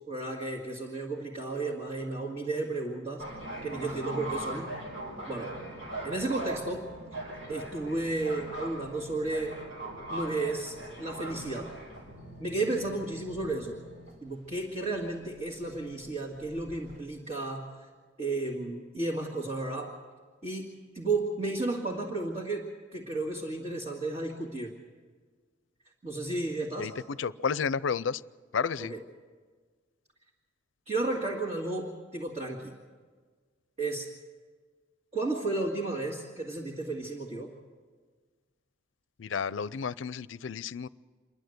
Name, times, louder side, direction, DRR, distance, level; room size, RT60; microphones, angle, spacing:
voice 1, 0.1-3.2 3.6-4.8 5.3-5.5 6.0-6.9 7.5-9.6 10.1-11.7 12.4-13.8 14.2-17.7 18.2-19.9 20.4-22.6 22.9-24.7 26.0-26.9 28.9-29.0 30.9-32.7 33.8-34.1 35.1-37.5, right 2 dB, 35° right, 2.2 m, -33 dB
sound 1, 3.2-17.0, right 1 dB, 85° right, 5.7 m, -41 dB
voice 2, 26.8-28.2 28.5-28.9 39.2-40.9, left 6 dB, 75° left, 0.5 m, -31 dB
28.0 x 11.5 x 7.9 m
head